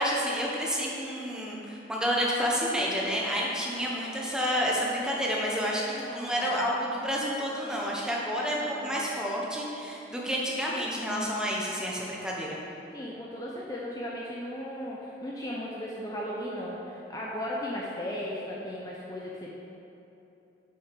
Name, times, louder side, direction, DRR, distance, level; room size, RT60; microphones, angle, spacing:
voice 1, 0.0-12.6, equal, 5° right, -4 dB, 1.0 m, -29 dB
voice 2, 5.9-6.7 8.5-9.3 12.9-19.5, left 1 dB, 20° left, -5 dB, 0.7 m, -36 dB
8.1 x 5.9 x 5.3 m, 2.9 s
head